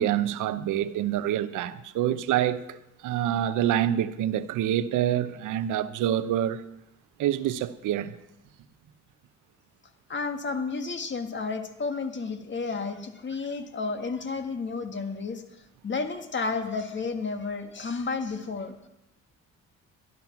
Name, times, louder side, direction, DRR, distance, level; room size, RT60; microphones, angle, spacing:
voice 1, 0.0-6.6 7.2-8.1, right 11 dB, 85° right, 0.8 m, -26 dB
voice 2, 10.1-15.4 15.8-18.7, left 4 dB, 40° left, 1.7 m, -31 dB
12.5 x 12.0 x 5.9 m
cardioid pair, 90°, 30 cm